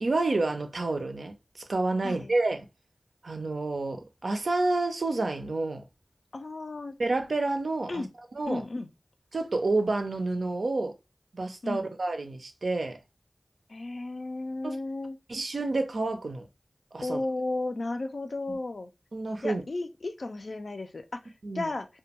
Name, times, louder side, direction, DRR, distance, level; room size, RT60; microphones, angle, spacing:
voice 1, 0.0-1.3 1.7-2.7 3.2-5.8 7.0-8.0 8.4-8.6 9.3-10.9 11.3-13.0 14.6-14.8 15.3-16.5 16.9-17.2 19.1-19.6 21.4-21.7, right 2 dB, 90° right, 0.4 m, -29 dB
voice 2, 6.3-6.9 7.9-8.1 8.5-8.9 11.6-11.9 13.7-15.2 17.0-18.9 19.4-21.9, left 2 dB, 80° left, 0.3 m, -34 dB
2.2 x 2.1 x 2.8 m
wide cardioid pair, 50°, 0 cm